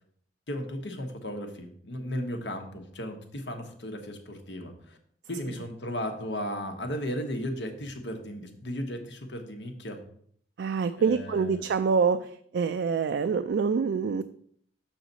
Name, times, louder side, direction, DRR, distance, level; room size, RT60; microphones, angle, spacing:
voice 1, 0.5-5.0 5.3-10.0 11.0-11.7, equal, 85° left, 5 dB, 1.1 m, -35 dB
voice 2, 10.6-14.2, right 5 dB, 75° right, 9 dB, 0.3 m, -26 dB
6.3 x 5.8 x 4.0 m, 0.63 s
head